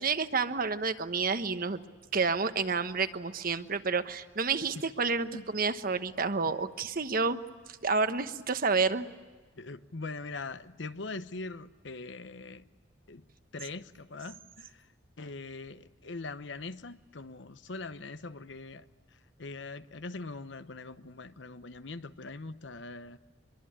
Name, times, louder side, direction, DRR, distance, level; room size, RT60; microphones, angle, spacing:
voice 1, 0.0-1.8 2.1-7.4 7.8-9.1, right 4 dB, 50° right, 1.1 m, -29 dB
voice 2, 9.6-12.6 13.1-13.2 13.5-14.9 15.2-18.8 19.4-23.2, left 3 dB, 70° left, 0.9 m, -42 dB
24.5 x 23.0 x 8.7 m
head